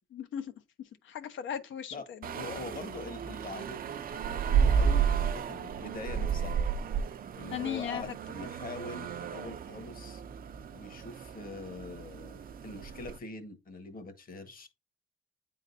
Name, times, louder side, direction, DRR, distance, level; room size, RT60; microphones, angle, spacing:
voice 1, 0.1-0.5 1.0-2.5 7.5-8.0, left 9 dB, 75° left, 0.9 m, -37 dB
sound 1, 2.2-13.2, right 7 dB, 45° right, 0.5 m, -32 dB
voice 2, 2.3-6.6 7.4-10.2 10.7-14.7, left 3 dB, 45° left, 1.4 m, -43 dB
9.1 x 3.8 x 2.7 m
cardioid pair, 90°, 20 cm